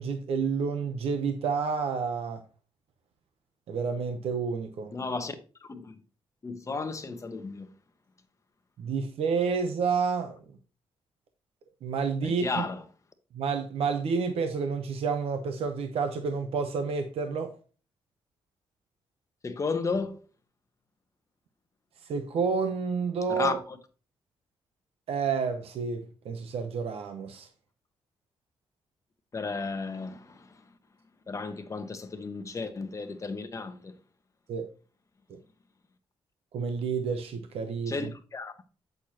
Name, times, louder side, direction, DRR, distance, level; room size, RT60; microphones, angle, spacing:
voice 1, 0.0-2.4 3.7-4.9 8.8-10.4 11.8-12.6 13.3-17.5 22.1-23.6 25.1-27.5 34.5-34.7 35.3-35.4 36.5-38.1, right 5 dB, 75° right, 0.9 m, -29 dB
voice 2, 4.9-5.3 5.6-6.0 6.4-7.7 12.2-12.8 19.4-20.2 23.3-23.8 29.3-30.6 31.3-33.9 37.9-38.5, left 4 dB, 30° left, 1.0 m, -34 dB
8.1 x 6.6 x 2.9 m
cardioid pair, 110°, 10 cm